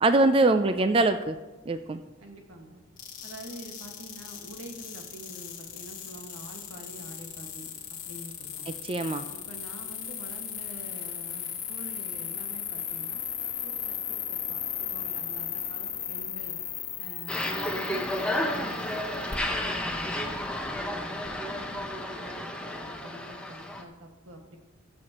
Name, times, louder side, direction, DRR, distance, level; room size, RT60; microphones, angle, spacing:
voice 1, 0.0-1.4 1.7-2.0 8.8-9.3, right 2 dB, 25° right, 9 dB, 0.3 m, -23 dB
voice 2, 2.2-2.8 3.2-7.7 8.1-8.8 9.3-13.2 13.6-16.6 17.0-20.4 20.7-24.6, right 1 dB, 85° right, 2 dB, 1.8 m, -46 dB
sound 1, 3.0-21.9, left 9 dB, 40° left, 1.3 m, -37 dB
sound 2, 17.3-23.8, left 1 dB, 5° left, 0.8 m, -32 dB
21.0 x 7.6 x 3.0 m, 1.1 s
head